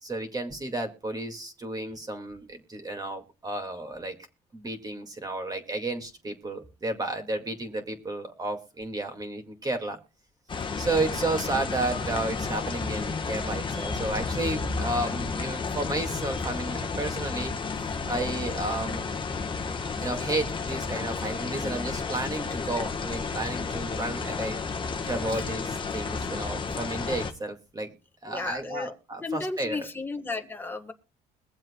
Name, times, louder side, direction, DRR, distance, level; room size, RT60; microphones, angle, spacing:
voice 1, 0.0-4.2 4.5-10.0 10.8-17.5 18.1-19.1 20.0-24.6 25.0-27.9 28.2-29.9, right 2 dB, 20° right, 4 dB, 2.2 m, -32 dB
sound 1, 10.5-27.3, left 4 dB, 30° left, 1.3 m, -32 dB
voice 2, 28.3-28.9 29.2-30.9, left 3 dB, 10° left, 5 dB, 1.4 m, -34 dB
22.5 x 7.5 x 2.3 m, 0.32 s
cardioid pair, 110°, 17 cm